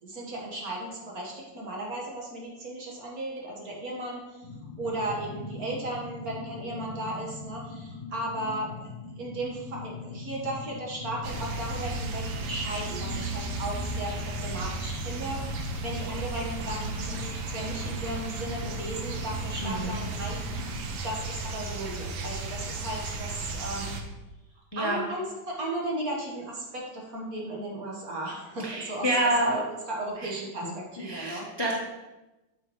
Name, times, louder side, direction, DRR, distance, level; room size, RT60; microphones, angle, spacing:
voice 1, 0.0-4.4 4.8-8.7 9.2-15.4 15.8-20.4 21.0-23.9 24.7-29.6 29.9-31.5, right 1 dB, 50° right, -2 dB, 1.8 m, -35 dB
sound 1, 4.4-20.9, left 3 dB, 60° left, 1.4 m, -41 dB
sound 2, 11.2-24.0, right 3 dB, 80° right, 1.6 m, -35 dB
voice 2, 19.6-19.9 24.7-25.0 28.6-29.6 30.2-30.3 30.6-31.7, right 1 dB, 20° left, -3 dB, 0.7 m, -28 dB
8.7 x 6.9 x 3.1 m, 1.0 s
omnidirectional pair, 2.1 m